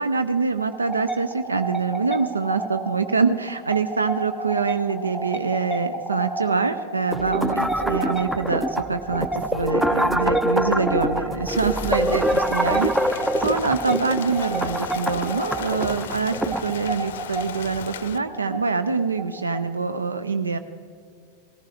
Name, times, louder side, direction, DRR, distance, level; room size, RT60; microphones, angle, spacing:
voice 1, 0.0-20.6, right 4 dB, 75° right, 10 dB, 0.5 m, -25 dB
sound 1, 0.6-20.0, right 2 dB, 10° left, 0.8 m, -32 dB
sound 2, 7.1-16.7, equal, 5° right, 0.5 m, -25 dB
Rain, 11.5-18.2, left 9 dB, 60° left, 0.6 m, -37 dB
19.0 x 14.5 x 3.4 m, 2.4 s
figure-of-eight pair, 90°, 0 cm